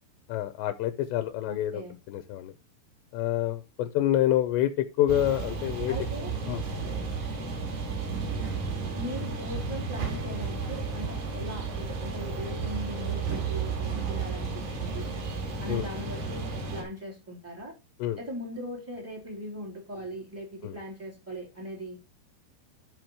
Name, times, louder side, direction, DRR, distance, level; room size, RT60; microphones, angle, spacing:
voice 1, 0.3-1.8 2.1-2.5 3.1-6.0 6.5-6.6 15.7-15.9 18.0-18.2 20.6-20.8, left 12 dB, 80° left, 9 dB, 2.8 m, -27 dB
voice 2, 1.4-1.9 5.9-6.3 6.9-7.0 8.9-15.1 15.6-17.7 18.2-22.0, equal, 5° right, -1 dB, 2.2 m, -39 dB
sound 1, 5.1-16.8, right 4 dB, 55° right, 4.0 m, -33 dB
12.0 x 4.9 x 4.7 m, 0.28 s
omnidirectional pair, 5.4 m